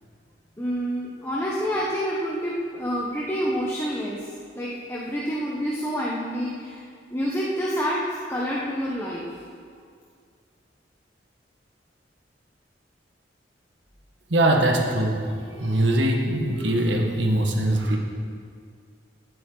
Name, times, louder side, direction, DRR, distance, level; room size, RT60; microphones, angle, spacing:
voice 1, 0.6-4.2 4.5-6.8 7.1-9.3, equal, 15° left, -5 dB, 1.1 m, -28 dB
voice 2, 14.3-18.0, right 1 dB, 90° right, 1 dB, 1.6 m, -22 dB
16.0 x 7.8 x 4.0 m, 2.2 s
head